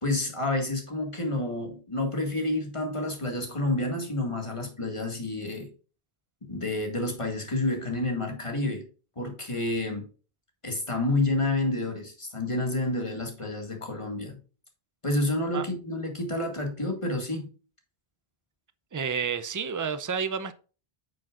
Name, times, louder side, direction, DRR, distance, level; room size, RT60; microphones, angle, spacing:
voice 1, 0.0-5.7 6.4-8.8 9.2-10.0 10.6-14.4 15.0-17.5, left 2 dB, 30° left, 2.0 m, -29 dB
voice 2, 18.9-20.5, right 6 dB, 25° right, 0.5 m, -30 dB
8.6 x 6.4 x 2.5 m
omnidirectional pair, 1.0 m